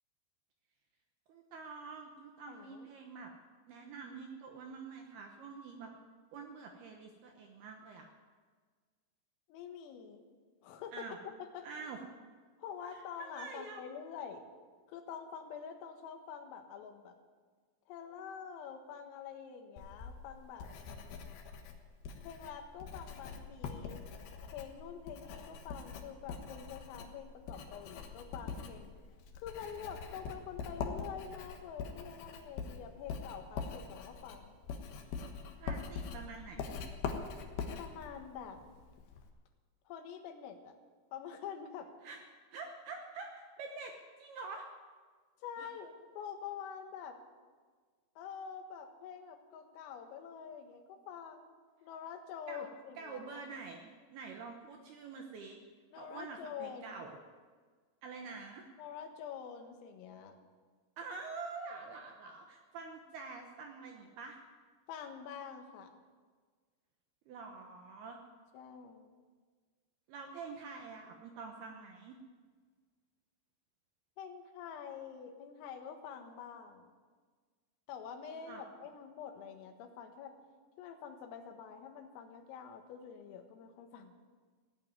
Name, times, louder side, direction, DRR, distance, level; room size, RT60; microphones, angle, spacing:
voice 1, 1.3-3.3 3.7-5.9 6.3-8.1 10.9-11.2 11.6-12.0 12.9-13.8 35.6-36.8 42.0-44.7 45.6-45.7 52.5-52.7 53.0-55.6 55.9-57.2 58.0-58.7 61.0-64.4 67.3-68.2 70.1-72.1 78.4-78.6, right 4 dB, 75° right, 3 dB, 2.4 m, -47 dB
voice 2, 2.5-2.9 9.5-10.3 10.6-11.2 11.5-11.7 12.6-14.5 14.9-17.2 17.9-20.7 22.2-24.0 24.5-28.9 29.4-34.6 37.8-38.6 39.9-40.7 41.1-41.9 45.4-47.2 48.2-53.4 55.9-57.0 58.8-60.4 64.9-66.0 68.5-69.1 74.2-76.9 77.9-80.4 80.8-84.1, left 7 dB, 85° left, 5 dB, 4.1 m, -46 dB
Writing, 19.8-39.3, left 5 dB, 65° left, 2.6 m, -44 dB
17.0 x 9.0 x 9.5 m, 1.5 s
omnidirectional pair, 5.8 m